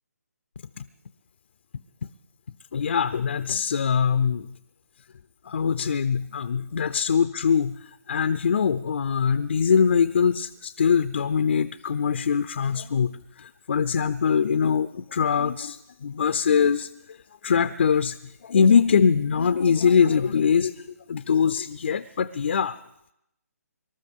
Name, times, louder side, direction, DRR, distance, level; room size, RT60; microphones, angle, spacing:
voice 1, 2.7-4.5 5.5-7.8 8.1-16.9 17.4-18.2 18.4-22.8, left 6 dB, 50° left, 12 dB, 0.5 m, -22 dB
25.0 x 13.0 x 3.6 m, 0.80 s
hypercardioid pair, 170°, 9 cm